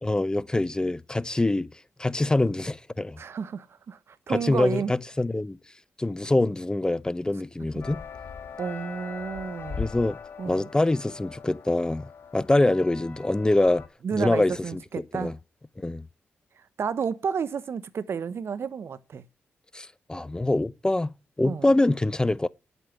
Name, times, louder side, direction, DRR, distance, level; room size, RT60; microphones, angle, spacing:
voice 1, 0.0-1.7 2.0-3.2 4.3-5.6 6.0-8.0 9.8-10.2 10.5-13.8 14.1-14.8 15.1-15.3 15.8-16.0 19.7-21.1 21.4-22.5, left 2 dB, 15° left, 0.6 m, -24 dB
voice 2, 3.2-4.9 8.6-9.9 10.4-10.7 14.0-15.3 16.8-19.2 21.4-21.7, right 6 dB, 60° right, 0.9 m, -31 dB
sound 1, 7.8-13.9, left 6 dB, 55° left, 2.6 m, -40 dB
10.5 x 8.2 x 9.0 m
cardioid pair, 55°, 5 cm